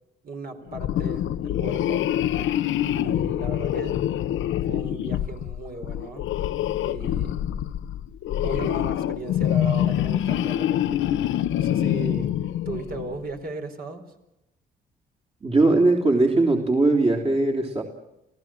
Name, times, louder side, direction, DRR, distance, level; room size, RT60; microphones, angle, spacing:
voice 1, 0.2-2.1 2.8-4.1 4.7-6.4 6.8-7.4 8.4-11.0 11.6-12.3 12.7-14.0, right 3 dB, 50° right, 5 dB, 4.3 m, -36 dB
sound 1, 0.7-13.2, left 11 dB, 80° left, 0.9 m, -25 dB
voice 2, 15.4-17.8, right 2 dB, 30° right, 1 dB, 3.5 m, -20 dB
29.0 x 17.0 x 7.6 m, 0.89 s
cardioid pair, 90°, 20 cm